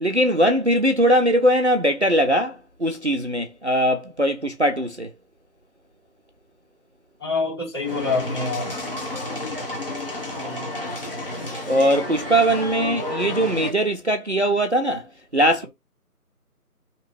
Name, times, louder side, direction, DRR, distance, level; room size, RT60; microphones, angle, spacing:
voice 1, 0.0-5.1 10.4-10.7 11.7-15.1 15.3-15.7, right 1 dB, 50° right, 0.5 m, -21 dB
voice 2, 7.2-8.7, left 3 dB, 15° left, 1.7 m, -26 dB
sound 1, 7.8-13.7, left 1 dB, 35° left, 1.0 m, -31 dB
2.9 x 2.9 x 4.5 m
figure-of-eight pair, 160°, 46 cm